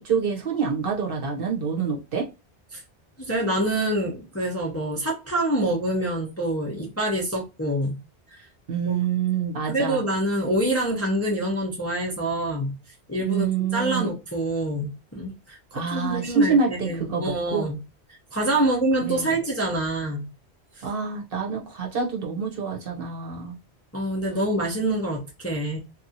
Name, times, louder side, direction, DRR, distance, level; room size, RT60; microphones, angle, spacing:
voice 1, 0.0-2.3 8.7-10.0 13.2-14.1 15.7-17.7 19.0-19.3 20.8-23.6, right 5 dB, 60° right, 1.0 m, -26 dB
voice 2, 3.2-8.0 8.3-8.4 8.8-9.0 9.7-12.7 13.1-17.8 18.3-20.2 20.8-20.9 23.9-25.8, right 1 dB, 20° left, 0.5 m, -26 dB
2.7 x 2.4 x 2.7 m
omnidirectional pair, 1.1 m